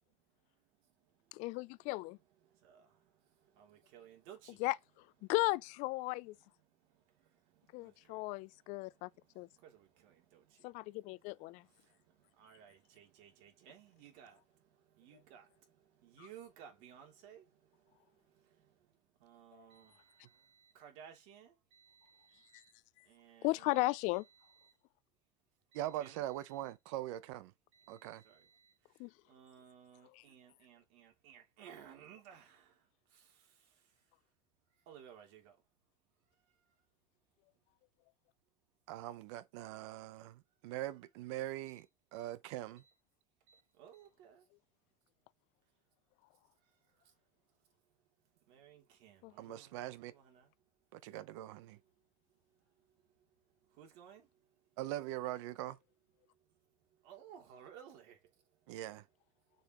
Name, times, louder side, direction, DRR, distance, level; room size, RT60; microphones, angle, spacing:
voice 1, 0.1-1.5 1.8-1.9 2.4-4.6 5.2-5.3 6.6-22.7 23.0-24.8 25.7-26.7 27.7-34.0 34.9-35.6 36.3-36.6 42.8-42.9 43.5-44.5 46.6-47.1 47.6-47.7 48.4-50.5 51.0-51.2 52.3-54.6 56.2-56.6 56.9-58.8, right 9 dB, 65° right, 2.8 m, -60 dB
voice 2, 1.3-2.2 4.6-6.3 7.7-9.1 9.4-9.5 10.6-11.6 16.2-16.3 19.5-19.7 23.4-24.2 29.0-29.1 30.1-30.2 49.2-49.3, left 21 dB, 55° left, 0.4 m, -36 dB
voice 3, 25.7-27.5 27.9-28.2 38.9-41.9 42.1-42.8 49.4-50.1 50.9-51.8 54.8-55.8 58.7-59.0, right 14 dB, 80° right, 0.8 m, -42 dB
6.8 x 5.6 x 3.0 m
supercardioid pair, 140°, 15 cm